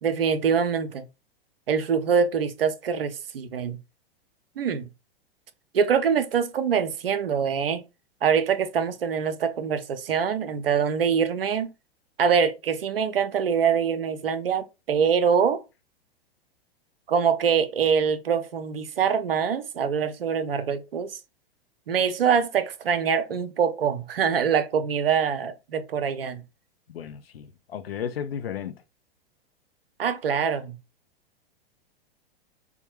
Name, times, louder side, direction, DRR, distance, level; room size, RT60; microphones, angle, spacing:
voice 1, 0.0-1.1 1.7-3.8 4.6-4.8 5.7-7.8 8.2-11.7 12.2-15.6 17.1-21.2 21.9-26.4 30.0-30.8, right 7 dB, 70° right, 0.5 m, -24 dB
voice 2, 26.9-28.8, left 8 dB, 75° left, 0.6 m, -34 dB
3.8 x 2.1 x 2.8 m
figure-of-eight pair, 100°, 30 cm